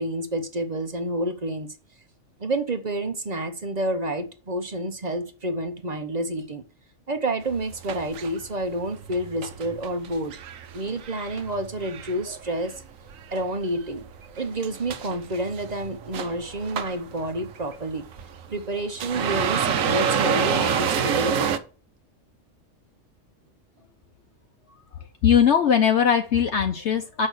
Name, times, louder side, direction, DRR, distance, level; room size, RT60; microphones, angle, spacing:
voice 1, 0.0-1.7 2.4-6.6 7.1-10.3 10.7-12.8 13.3-14.1 14.4-18.0 18.5-21.6, right 1 dB, 35° right, 0.8 m, -29 dB
sound 1, 7.4-12.8 13.1-21.6, right 7 dB, 85° right, 1.2 m, -28 dB
voice 2, 25.2-27.3, left 8 dB, 65° left, 1.0 m, -20 dB
6.8 x 5.4 x 6.2 m
omnidirectional pair, 1.3 m